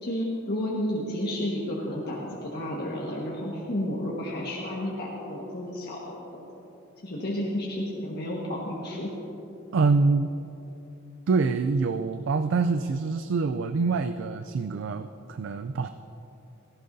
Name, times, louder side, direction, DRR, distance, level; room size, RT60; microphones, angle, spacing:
voice 1, 0.0-6.4 7.0-9.1, left 1 dB, 55° left, -4 dB, 1.5 m, -31 dB
voice 2, 9.7-10.3 11.3-15.9, right 4 dB, 65° right, 9 dB, 0.4 m, -25 dB
17.0 x 16.0 x 2.7 m, 2.8 s
head